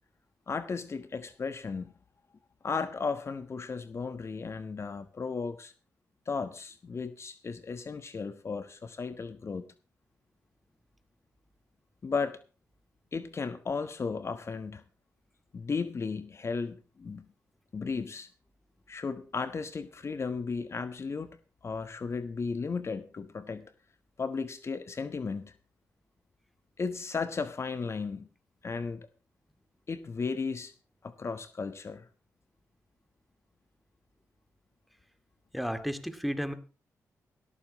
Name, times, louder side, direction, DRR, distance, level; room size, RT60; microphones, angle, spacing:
voice 1, 0.5-1.9 2.6-5.7 6.3-9.7 12.0-12.4 13.1-14.8 15.5-17.3 17.7-18.3 18.9-21.3 21.6-23.7 24.2-25.5 26.8-28.3 28.6-29.0 29.9-30.7 31.0-32.0, left 4 dB, 45° left, 11 dB, 1.3 m, -35 dB
voice 2, 35.5-36.5, equal, ahead, 10 dB, 2.3 m, -32 dB
17.0 x 14.0 x 3.1 m, 0.34 s
cardioid pair, 65°, 6 cm